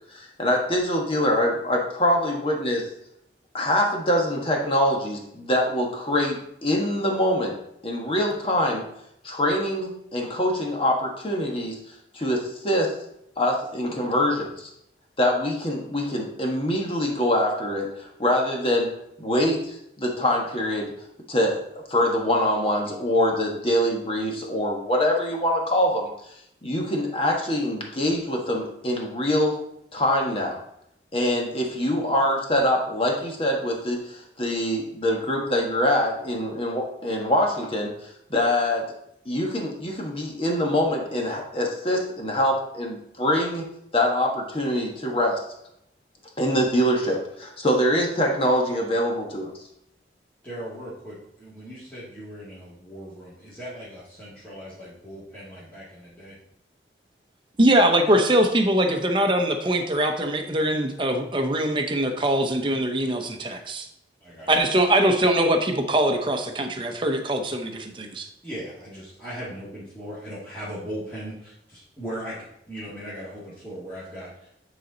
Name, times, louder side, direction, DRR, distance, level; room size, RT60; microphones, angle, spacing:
voice 1, 0.1-2.9 3.5-7.6 7.8-8.8 9.2-11.8 12.1-12.9 13.4-14.7 15.2-18.9 19.2-20.9 21.3-21.6 21.9-26.1 26.6-29.6 29.9-30.6 31.1-37.9 38.3-38.9 39.2-43.6 43.9-45.4 46.4-49.5, left 1 dB, 30° left, 0 dB, 1.3 m, -24 dB
voice 2, 50.4-56.4 64.2-64.5 64.9-65.0 68.4-72.4 72.7-74.5, equal, 10° left, -11 dB, 1.9 m, -38 dB
voice 3, 57.6-63.9 64.5-68.3, right 1 dB, 30° right, 4 dB, 0.8 m, -22 dB
10.0 x 4.2 x 3.9 m, 0.77 s
head